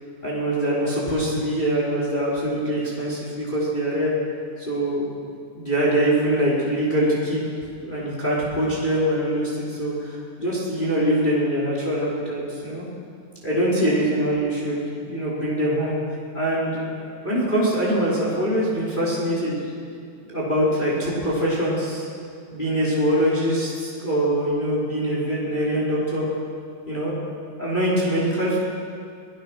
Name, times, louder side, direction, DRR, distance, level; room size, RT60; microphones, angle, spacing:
voice 1, 0.2-4.1 4.7-5.2 5.5-7.4 7.8-12.8 13.4-16.0 16.3-19.7 20.3-22.1 22.5-26.3 26.9-28.6, right 1 dB, 10° left, -6 dB, 4.3 m, -23 dB
24.0 x 18.0 x 6.4 m, 2.3 s
omnidirectional pair, 4.6 m